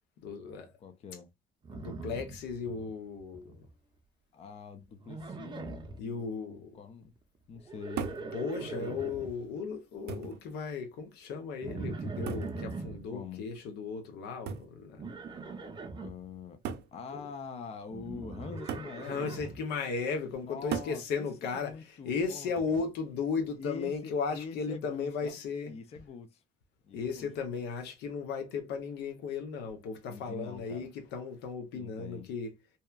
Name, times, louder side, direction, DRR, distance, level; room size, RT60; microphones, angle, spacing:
voice 1, 0.2-0.7 1.7-3.6 6.0-6.7 8.3-15.1 17.1-17.2 19.0-21.8 22.0-25.7 26.9-32.6, left 5 dB, 85° left, 0.7 m, -36 dB
voice 2, 0.8-1.3 4.3-7.1 7.5-8.4 8.8-8.9 13.1-13.4 15.9-16.6 16.9-19.5 20.4-22.9 23.6-25.4 25.7-26.4 26.8-27.3 30.1-30.9 31.7-32.3, left 6 dB, 40° left, 0.4 m, -45 dB
Livestock farm animals working animals, 1.6-2.9 3.2-3.7 5.0-6.0 7.6-9.3 11.6-13.0 15.0-16.1 17.9-19.6, right 3 dB, 25° right, 0.6 m, -41 dB
sound 1, 8.0-8.3 9.3-9.4 10.1-10.4 12.3-12.6 14.5-14.7 15.8-15.9 16.6-16.9 18.7-19.0 20.7-21.0 22.6-22.9, right 7 dB, 80° right, 0.4 m, -37 dB
2.8 x 2.2 x 2.3 m
cardioid pair, 110°, 17 cm